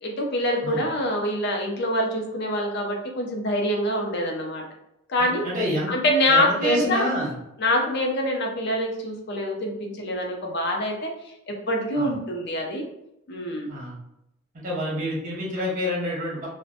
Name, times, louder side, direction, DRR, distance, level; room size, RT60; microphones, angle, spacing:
voice 1, 0.0-4.6 5.1-5.4 5.9-7.1 7.6-11.1 11.5-12.8 13.3-13.7, left 1 dB, 50° left, 1 dB, 0.5 m, -25 dB
voice 2, 5.2-5.9 6.3-7.3 12.0-12.1 13.7-14.0 14.6-16.5, equal, 35° right, -5 dB, 0.9 m, -27 dB
2.7 x 2.1 x 2.5 m, 0.84 s
head